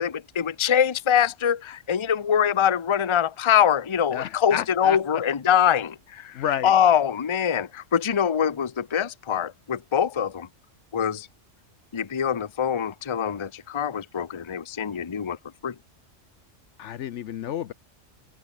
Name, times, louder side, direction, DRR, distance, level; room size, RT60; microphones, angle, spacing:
voice 1, 0.0-6.3 6.6-10.5 10.9-11.3 11.9-15.4 15.6-15.7, left 8 dB, 30° left, 0.7 m, -23 dB
voice 2, 4.1-5.0 6.3-6.7 16.8-17.7, left 10 dB, 70° left, 0.9 m, -30 dB
open air
omnidirectional pair, 1.3 m